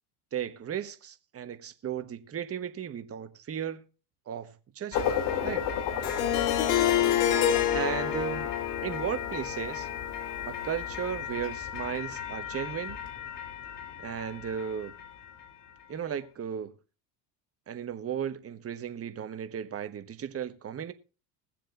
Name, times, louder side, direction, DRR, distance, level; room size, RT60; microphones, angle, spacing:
voice 1, 0.3-3.8 4.3-5.2 5.4-5.7 7.6-8.5 8.8-9.9 10.5-13.0 14.0-14.9 15.9-16.7 17.7-20.9, right 8 dB, 30° right, 1.2 m, -35 dB
sound 1, 4.9-16.1, left 8 dB, 60° left, 2.6 m, -35 dB
Harp, 6.0-11.0, left 10 dB, 85° left, 1.6 m, -28 dB
20.5 x 7.5 x 2.5 m
supercardioid pair, 90°, 46 cm